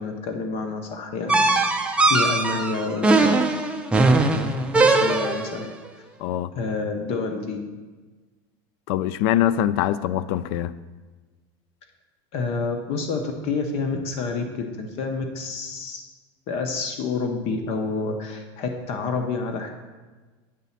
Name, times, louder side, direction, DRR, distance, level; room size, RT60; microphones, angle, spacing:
voice 1, 0.0-1.4 2.1-3.4 4.8-5.7 6.5-7.6 12.3-16.1 16.5-19.9, left 4 dB, 50° left, 5 dB, 0.8 m, -28 dB
sound 1, 1.3-5.6, right 3 dB, 10° right, 0.5 m, -20 dB
voice 2, 6.2-6.5 8.9-10.7, left 11 dB, 70° left, 15 dB, 0.4 m, -23 dB
8.4 x 4.0 x 5.7 m, 1.3 s
cardioid pair, 150°, 13 cm